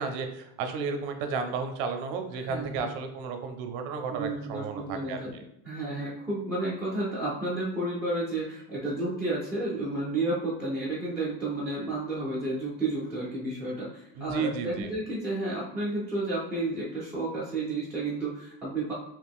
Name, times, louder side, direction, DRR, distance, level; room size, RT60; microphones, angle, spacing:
voice 1, 0.0-5.4 14.1-14.9, right 5 dB, 50° right, 6 dB, 0.5 m, -33 dB
voice 2, 2.3-2.9 4.1-5.3 5.6-18.9, right 2 dB, 5° right, -8 dB, 0.4 m, -31 dB
2.9 x 2.4 x 3.4 m, 0.81 s
cardioid pair, 165°, 37 cm